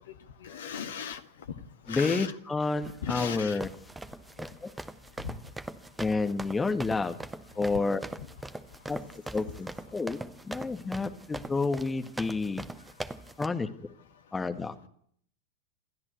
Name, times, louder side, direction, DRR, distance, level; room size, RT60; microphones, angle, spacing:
voice 1, 0.4-1.2 1.5-2.3 3.0-3.6 5.2-5.3 7.7-7.9 8.2-8.3, left 7 dB, 60° left, 9 dB, 1.9 m, -37 dB
voice 2, 1.9-3.7 4.4-4.7 6.0-7.2 7.6-8.0 8.9-9.0 9.3-10.2 10.4-12.6 13.4-13.7 14.3-14.7, left 3 dB, 10° left, 6 dB, 2.0 m, -30 dB
sound 1, 2.9-13.5, right 2 dB, 10° right, 1.1 m, -41 dB
27.5 x 13.5 x 8.4 m, 0.66 s
figure-of-eight pair, 90°, 0 cm